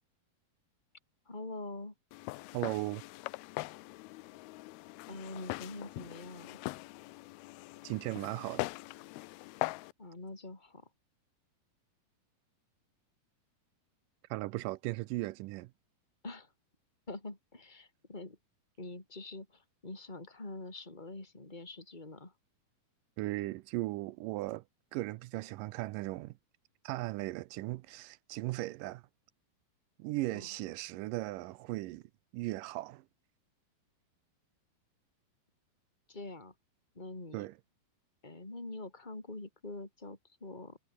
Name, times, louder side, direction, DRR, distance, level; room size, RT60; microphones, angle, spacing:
voice 1, 1.3-1.9 5.1-6.6 10.0-10.9 16.2-16.5 17.1-18.4 18.8-22.3 30.3-30.5 36.1-36.5 36.9-37.5 38.2-40.8, left 2 dB, 10° left, 4.2 m, -45 dB
Walk footsteps, 2.1-9.9, left 21 dB, 85° left, 2.5 m, -42 dB
voice 2, 2.5-3.0 7.8-8.7 14.3-15.7 23.2-24.6 24.9-26.3 26.8-29.0 30.0-32.0 32.3-33.0 37.3-37.6, right 19 dB, 85° right, 1.9 m, -37 dB
omnidirectional pair, 4.5 m